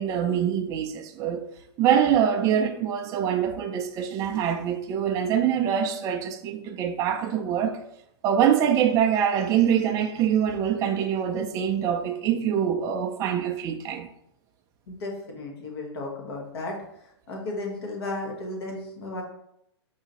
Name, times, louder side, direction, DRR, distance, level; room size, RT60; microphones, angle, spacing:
voice 1, 0.0-1.4 1.8-7.8 8.2-14.1, right 9 dB, 25° right, 0.4 m, -24 dB
voice 2, 14.9-16.8 17.3-19.2, left 2 dB, 65° left, 1.3 m, -34 dB
4.8 x 2.7 x 2.9 m
hypercardioid pair, 130°, 14 cm